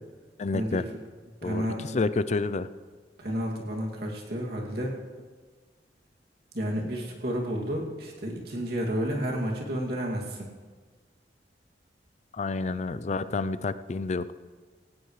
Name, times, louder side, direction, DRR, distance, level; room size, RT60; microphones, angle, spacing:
voice 1, 0.4-0.9 1.4-1.7 1.9-2.7 12.3-14.3, left 3 dB, 40° left, 14 dB, 0.4 m, -29 dB
voice 2, 1.4-2.0 3.2-5.0 6.5-10.5, equal, 60° right, -1 dB, 2.5 m, -31 dB
17.5 x 16.0 x 3.2 m, 1.5 s
head